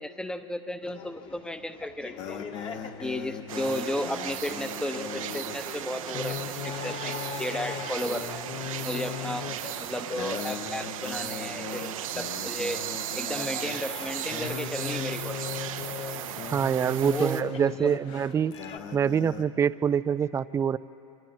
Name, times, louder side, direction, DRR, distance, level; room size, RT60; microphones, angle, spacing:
voice 1, 0.0-2.4 3.0-8.5 8.8-9.5 9.8-12.9 13.1-15.3 17.0-17.9, left 1 dB, 5° left, 9 dB, 0.9 m, -34 dB
sound 1, 0.8-18.8, left 4 dB, 30° left, 1.6 m, -45 dB
sound 2, 2.2-19.4, left 9 dB, 50° left, 1.2 m, -39 dB
sound 3, 3.5-17.4, right 11 dB, 85° right, 0.9 m, -36 dB
voice 2, 16.5-18.5 18.9-20.8, right 7 dB, 15° right, 17 dB, 0.4 m, -25 dB
25.5 x 25.0 x 4.4 m, 2.9 s
supercardioid pair, 115°, 17 cm